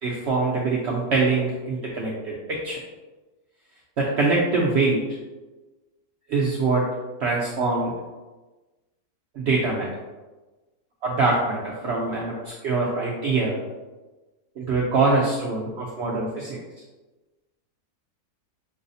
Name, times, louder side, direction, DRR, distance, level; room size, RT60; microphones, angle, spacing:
voice 1, 0.0-2.8 4.0-5.0 6.3-6.9 7.2-7.9 9.3-9.9 11.0-13.6 14.6-16.6, right 3 dB, 75° right, -4 dB, 0.6 m, -24 dB
5.4 x 2.0 x 2.6 m, 1.2 s
omnidirectional pair, 1.6 m